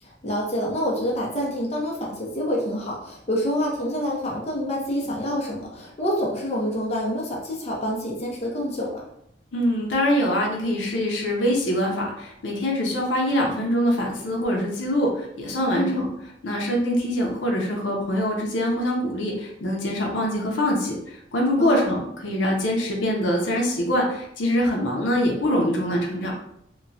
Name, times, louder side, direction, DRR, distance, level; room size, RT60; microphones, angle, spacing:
voice 1, 0.0-9.0 15.7-16.1 21.6-21.9, equal, 35° left, -2 dB, 0.6 m, -27 dB
voice 2, 9.5-16.1 16.4-26.4, equal, 85° left, -1 dB, 0.6 m, -24 dB
2.9 x 2.2 x 2.6 m, 0.74 s
head